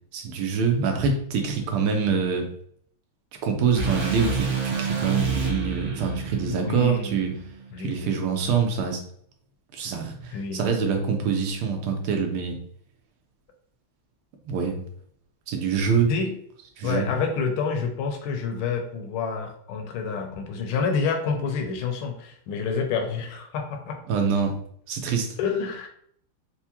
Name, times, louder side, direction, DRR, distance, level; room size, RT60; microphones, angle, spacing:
voice 1, 0.1-2.5 3.4-7.3 7.8-9.0 9.7-12.6 14.4-14.8 15.5-16.1 16.8-17.1 24.1-24.5 24.9-25.3, right 6 dB, 80° right, 4 dB, 1.5 m, -25 dB
sound 1, 3.7-7.9, right 4 dB, 60° right, 1.7 m, -29 dB
voice 2, 6.4-7.2 7.7-8.1 10.3-10.7 16.1-16.3 16.8-24.0 25.4-25.9, left 5 dB, 75° left, 4 dB, 1.4 m, -28 dB
4.5 x 2.1 x 2.8 m, 0.65 s
omnidirectional pair, 2.4 m